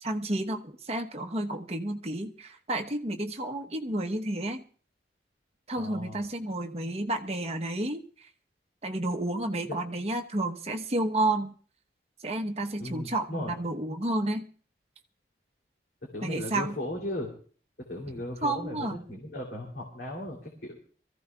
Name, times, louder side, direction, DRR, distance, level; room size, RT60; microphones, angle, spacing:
voice 1, 0.0-4.6 5.7-8.0 8.8-11.5 12.2-14.5 16.2-16.7 18.4-19.0, right 1 dB, 35° right, 4 dB, 1.0 m, -31 dB
voice 2, 5.8-6.3 9.7-9.8 12.8-13.5 16.0-17.3 17.8-20.7, left 1 dB, 75° left, -1 dB, 3.0 m, -37 dB
25.0 x 15.0 x 2.3 m, 0.43 s
head